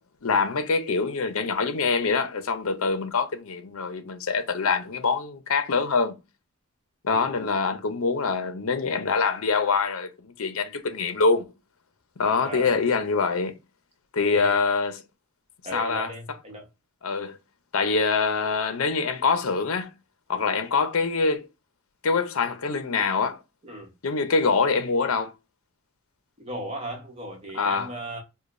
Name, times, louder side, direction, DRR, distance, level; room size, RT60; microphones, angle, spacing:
voice 1, 0.2-6.2 7.0-11.5 12.2-13.6 14.1-15.0 15.7-16.1 17.0-17.4 17.7-19.9 20.3-21.5 22.0-23.4 24.0-25.3 27.5-27.9, left 4 dB, 70° left, 0.6 m, -24 dB
voice 2, 7.1-7.5 12.4-12.9 14.3-14.6 15.6-16.7 20.3-20.6 23.6-23.9 26.4-28.2, right 1 dB, 25° right, 1.0 m, -37 dB
4.9 x 2.2 x 2.5 m
head